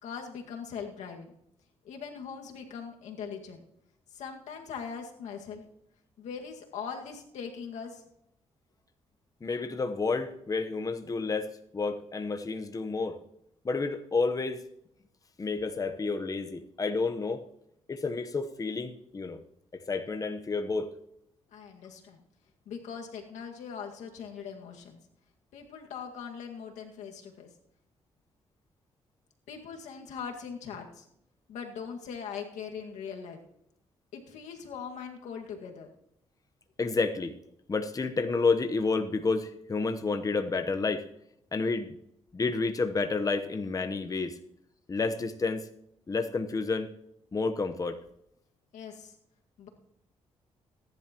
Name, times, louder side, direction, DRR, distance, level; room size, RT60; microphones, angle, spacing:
voice 1, 0.0-1.3 1.8-3.6 4.1-5.6 6.2-8.0 21.5-22.2 22.7-25.0 25.5-27.5 29.5-31.1 31.5-33.4 34.1-35.9 48.7-49.1 49.6-49.7, left 6 dB, 85° left, 2 dB, 2.0 m, -41 dB
voice 2, 9.4-13.2 13.6-14.7 15.4-17.5 17.9-19.4 19.7-20.9 36.8-37.3 37.7-41.1 41.5-41.9 42.3-44.4 44.9-45.7 46.1-46.9 47.3-48.0, left 4 dB, 30° left, 7 dB, 1.0 m, -30 dB
22.0 x 11.0 x 3.0 m, 0.78 s
cardioid pair, 80°, 12 cm